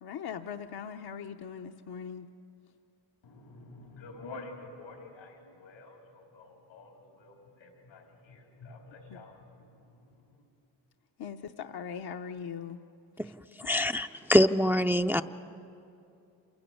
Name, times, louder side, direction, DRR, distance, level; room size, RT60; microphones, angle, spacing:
voice 1, 0.0-2.3 9.1-9.2 11.2-12.8 13.2-13.3, left 7 dB, 55° left, 0.8 m, -40 dB
voice 2, 3.2-10.5, left 3 dB, 90° left, 4.0 m, -49 dB
voice 3, 13.6-15.2, equal, 5° right, 0.5 m, -24 dB
27.5 x 11.5 x 8.4 m
supercardioid pair, 40°, 47 cm